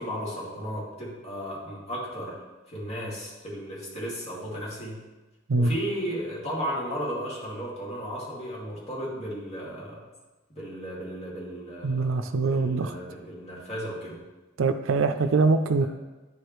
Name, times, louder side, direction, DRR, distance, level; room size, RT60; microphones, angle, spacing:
voice 1, 0.0-2.4 2.7-5.0 5.6-10.0 10.5-14.2, equal, 30° left, -5 dB, 2.2 m, -35 dB
voice 2, 11.8-12.9 14.6-15.9, right 3 dB, 70° right, 9 dB, 0.4 m, -23 dB
11.0 x 4.8 x 3.1 m, 1.2 s
head